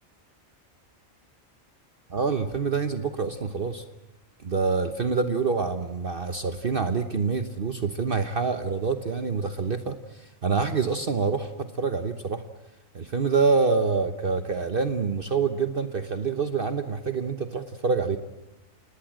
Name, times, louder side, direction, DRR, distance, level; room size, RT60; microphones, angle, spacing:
voice 1, 2.1-3.8 4.4-12.4 12.9-18.2, right 4 dB, 45° right, 8 dB, 1.1 m, -26 dB
29.0 x 19.0 x 7.7 m, 0.98 s
omnidirectional pair, 1.4 m